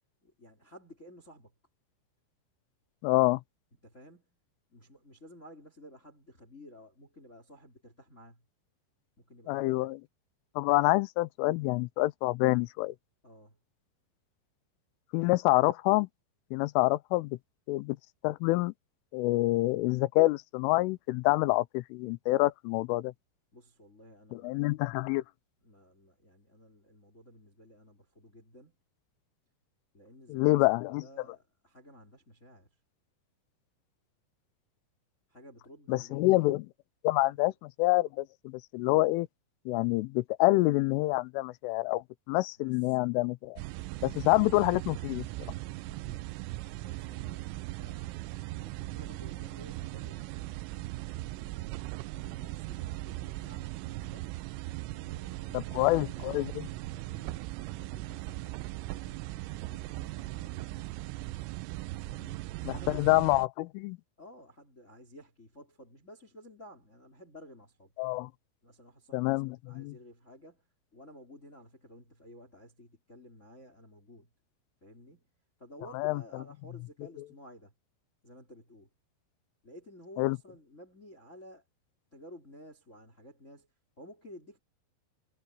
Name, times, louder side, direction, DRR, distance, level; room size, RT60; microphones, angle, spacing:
voice 1, 0.2-1.5 3.8-4.4 4.7-8.4 9.2-9.9 13.2-13.6 23.5-24.7 25.6-28.8 29.9-32.7 35.3-36.2 37.3-37.5 42.6-42.8 45.8-50.7 51.1-54.3 54.8-60.9 62.1-63.1 63.3-63.4 64.2-67.9 68.6-74.3 74.8-75.3 75.6-77.7 78.2-78.9 79.6-81.7 82.1-83.7 84.0-84.6, left 1 dB, 15° left, 3.6 m, -54 dB
voice 2, 3.0-3.4 9.5-10.0 10.6-13.0 15.1-16.1 16.5-17.4 17.7-18.0 18.2-18.7 19.1-23.1 24.3-25.2 30.3-31.0 35.9-36.6 37.0-39.3 39.7-43.6 44.0-45.2 55.5-56.7 62.6-64.0 68.0-68.3 69.1-69.9 75.9-76.2 80.2-80.4, left 20 dB, 90° left, 3.2 m, -27 dB
sound 1, 43.6-63.5, right 18 dB, 90° right, 3.2 m, -39 dB
omnidirectional pair, 5.6 m